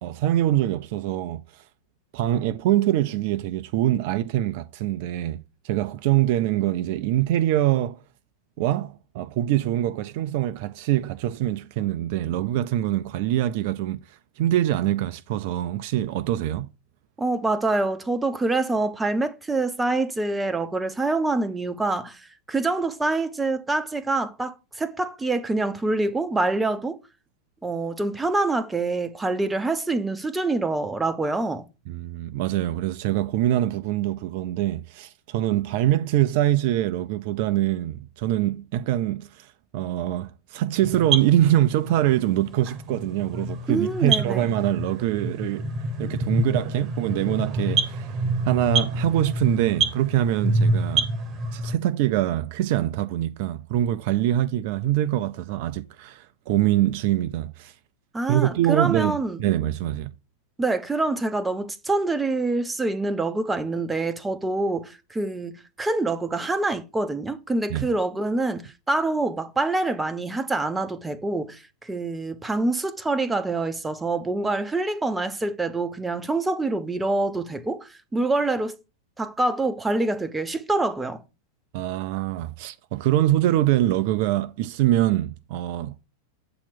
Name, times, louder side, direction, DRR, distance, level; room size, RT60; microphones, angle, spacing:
voice 1, 0.0-1.6 2.1-8.0 8.6-14.0 14.4-16.7 31.9-45.7 46.0-48.2 48.5-51.1 51.5-57.7 58.3-60.1 67.7-67.9 81.7-86.0, right 13 dB, 50° right, 0.3 m, -24 dB
voice 2, 17.2-27.0 27.6-31.6 43.7-44.5 58.1-59.4 60.6-78.8 79.2-81.2, right 2 dB, 10° right, 0.6 m, -26 dB
sound 1, 40.8-51.8, right 2 dB, 30° right, 0.9 m, -27 dB
7.8 x 2.9 x 5.8 m
figure-of-eight pair, 90°, 0 cm